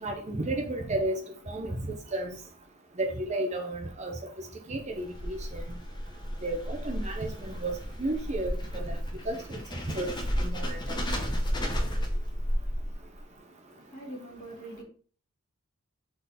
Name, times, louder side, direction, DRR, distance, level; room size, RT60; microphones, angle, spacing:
voice 1, 0.0-1.2 1.5-1.8 2.1-2.4 3.0-4.1 4.7-5.6 6.4-7.7 8.0-9.0 9.3-9.6 9.9-10.1 10.4-10.8, right 2 dB, 30° right, 0.7 m, -32 dB
sound 1, 4.9-13.2, equal, 20° left, 0.9 m, -32 dB
voice 2, 13.7-14.8, right 1 dB, 35° left, 2.5 m, -43 dB
6.2 x 3.9 x 4.2 m
head